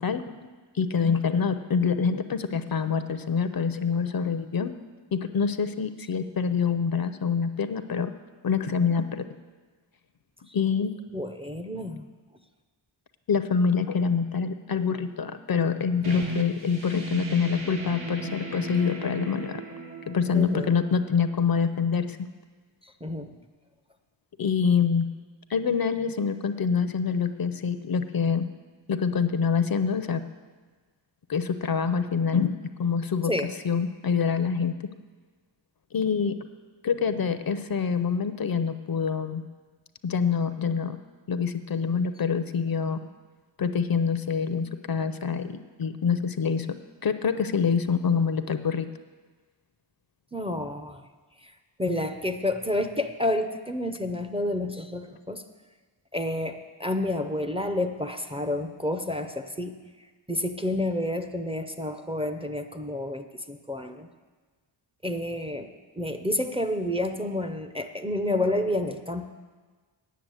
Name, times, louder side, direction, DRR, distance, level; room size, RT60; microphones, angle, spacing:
voice 1, 0.0-0.5 0.7-4.7 5.1-8.1 8.4-9.2 10.5-10.9 13.3-19.6 20.1-22.3 24.4-25.0 25.5-28.5 28.9-30.2 31.3-34.7 35.9-36.3 36.8-39.4 40.0-41.0 41.3-43.1 43.6-46.7 47.0-48.9, left 6 dB, 50° left, 10 dB, 0.6 m, -26 dB
voice 2, 11.1-12.1 20.3-20.7 23.0-23.3 33.3-33.5 50.3-51.0 51.8-55.4 56.1-59.7 60.3-64.1 65.0-65.7 66.0-69.3, left 1 dB, 15° right, 6 dB, 0.5 m, -29 dB
sound 1, 16.0-21.5, right 2 dB, 80° right, 1.6 m, -37 dB
9.3 x 6.7 x 8.9 m, 1.4 s
wide cardioid pair, 125°, 47 cm